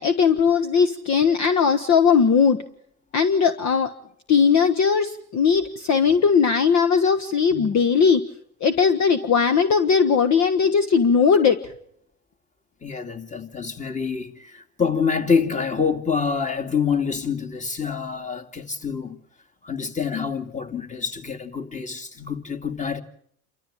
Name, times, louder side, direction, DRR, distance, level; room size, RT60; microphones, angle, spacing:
voice 1, 0.0-2.6 3.1-3.9 4.3-8.2 8.6-11.6, left 6 dB, 40° left, 1.4 m, -19 dB
voice 2, 12.8-19.2 19.6-23.0, left 6 dB, 20° left, 2.4 m, -26 dB
28.5 x 13.5 x 8.8 m
supercardioid pair, 95°, 41 cm